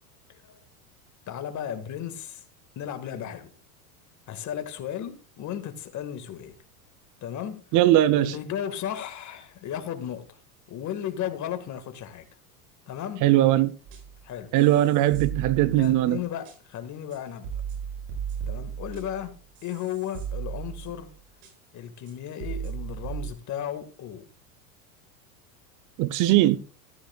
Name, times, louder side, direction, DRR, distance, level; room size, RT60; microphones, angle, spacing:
voice 1, 0.3-0.6 1.3-2.4 2.8-3.5 4.3-6.6 7.2-7.7 8.1-10.4 10.7-12.3 12.9-13.3 14.2-14.5 15.8-17.6 18.5-21.1 21.7-24.3, left 10 dB, 40° left, 1.8 m, -35 dB
voice 2, 7.7-8.3 13.2-13.8 14.5-16.2 26.0-26.6, right 14 dB, 45° right, 0.7 m, -20 dB
sound 1, 13.9-14.2 14.5-16.1 16.4-16.5 17.1-17.2 17.4-21.1 21.4-21.5 22.1-22.2 22.4-23.3, right 8 dB, 65° right, 7.1 m, -36 dB
14.5 x 13.0 x 2.3 m
supercardioid pair, 110°, 45 cm